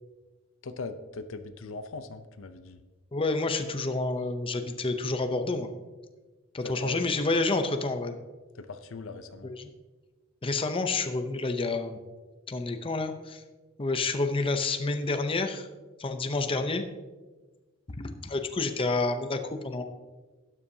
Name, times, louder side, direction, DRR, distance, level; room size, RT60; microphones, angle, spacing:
voice 1, 0.6-2.8 6.6-7.0 8.6-9.5, left 3 dB, 65° left, 10 dB, 0.6 m, -40 dB
voice 2, 3.1-5.7 6.5-8.2 9.4-9.7 10.4-12.0 12.5-13.4 13.8-15.7 16.0-16.8 17.9-19.8, left 3 dB, 25° left, 7 dB, 0.6 m, -29 dB
12.5 x 9.7 x 2.7 m, 1.3 s
head